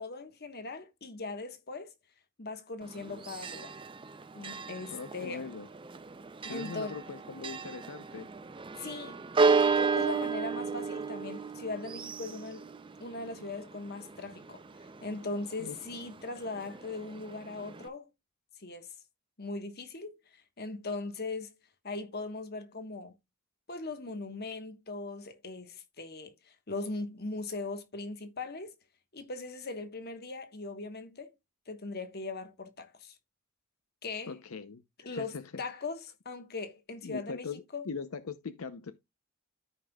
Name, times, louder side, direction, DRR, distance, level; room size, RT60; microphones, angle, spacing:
voice 1, 0.0-1.9 2.4-3.8 4.3-5.5 6.4-7.0 8.8-12.6 13.0-14.6 15.0-18.1 18.6-18.9 19.4-20.2 20.6-21.5 21.8-23.1 23.7-28.7 29.1-31.3 31.7-33.1 34.0-34.3 35.0-37.5 37.7-37.8, left 3 dB, 45° left, 1.3 m, -39 dB
Church bell, 2.8-17.9, right 4 dB, 25° right, 0.5 m, -34 dB
voice 2, 4.9-5.7 6.5-8.3 15.6-15.8 34.3-35.6 37.0-38.9, left 5 dB, 75° left, 0.7 m, -41 dB
13.5 x 5.4 x 2.3 m
head